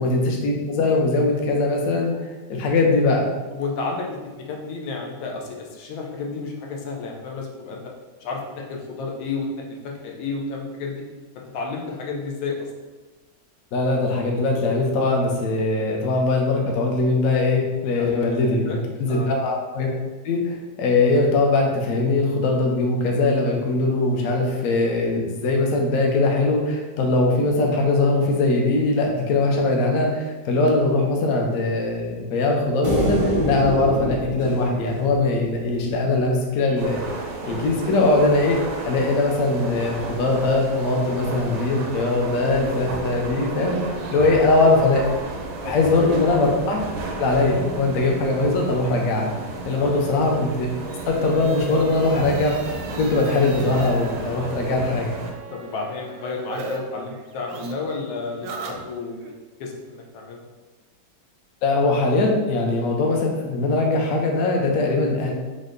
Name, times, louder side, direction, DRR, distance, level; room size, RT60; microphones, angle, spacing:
voice 1, 0.0-2.1 2.5-3.3 13.7-19.9 20.2-37.0 37.4-38.6 38.8-45.0 45.6-46.8 47.2-49.3 49.6-50.7 51.1-52.6 53.0-55.2 61.6-65.3, left 2 dB, 65° left, 0 dB, 0.8 m, -21 dB
voice 2, 3.5-7.9 8.2-11.0 11.5-12.6 17.9-18.1 18.4-18.8 19.1-19.4 44.3-44.7 45.6-46.2 49.7-50.1 55.5-59.2 59.6-60.5, left 4 dB, 85° left, 0 dB, 1.5 m, -32 dB
sound 1, 32.8-36.2, equal, 30° left, 0.5 m, -26 dB
sound 2, 36.8-55.3, right 3 dB, 90° right, 1.4 m, -33 dB
sound 3, 50.2-56.8 57.1-59.3, right 3 dB, 75° right, 1.0 m, -37 dB
5.2 x 2.1 x 3.8 m, 1.2 s
omnidirectional pair, 2.1 m